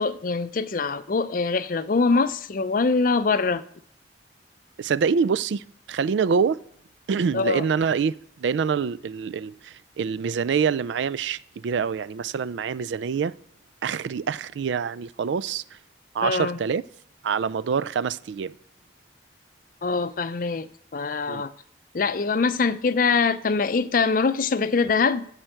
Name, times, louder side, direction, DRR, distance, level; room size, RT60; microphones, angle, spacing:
voice 1, 0.0-3.6 7.3-7.7 16.2-16.6 19.8-21.5 21.9-25.3, left 4 dB, 50° left, 0.5 m, -23 dB
voice 2, 4.8-6.6 7.1-13.3 13.8-15.6 16.1-16.8 17.2-18.5 21.3-21.4, right 6 dB, 85° right, 0.4 m, -26 dB
12.5 x 4.6 x 7.7 m
head